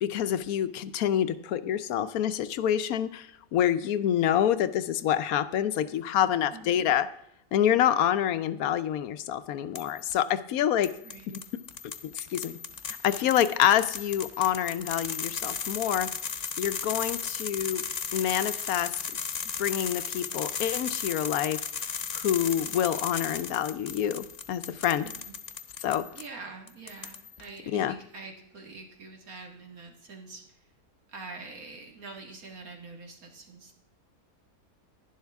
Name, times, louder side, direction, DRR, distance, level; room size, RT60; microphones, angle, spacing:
voice 1, 0.0-7.1 7.5-10.9 12.1-12.6 12.9-17.8 18.1-19.0 19.6-21.9 22.1-25.1 25.8-26.1 27.7-27.9, left 10 dB, 75° left, 13 dB, 1.1 m, -27 dB
voice 2, 6.5-6.8 11.0-11.3 25.0-25.4 26.1-30.7 31.1-33.8, right 3 dB, 70° right, 2 dB, 2.3 m, -45 dB
sound 1, 9.8-10.2 10.8-26.3 26.7-27.4, left 6 dB, 40° left, 0.6 m, -36 dB
11.0 x 11.0 x 3.5 m, 0.76 s
omnidirectional pair, 1.6 m